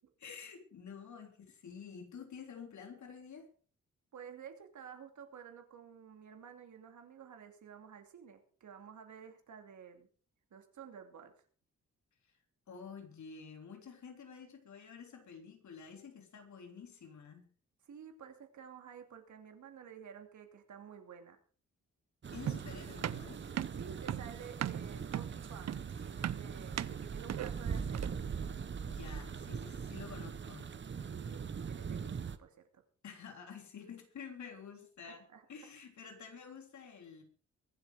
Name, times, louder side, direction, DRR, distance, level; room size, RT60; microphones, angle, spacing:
voice 1, 0.2-3.5 12.7-17.4 22.3-23.4 28.9-30.7 33.0-37.2, left 6 dB, 75° left, 4 dB, 3.6 m, -50 dB
voice 2, 4.1-10.1 10.5-11.3 17.9-21.4 23.8-28.2 31.1-32.8 35.0-35.4, right 7 dB, 80° right, 6 dB, 2.8 m, -52 dB
sound 1, 22.2-32.4, right 6 dB, 40° right, 0.9 m, -41 dB
sound 2, 22.5-28.3, right 11 dB, 65° right, 0.6 m, -39 dB
23.0 x 7.9 x 5.0 m, 0.42 s
wide cardioid pair, 140°, 29 cm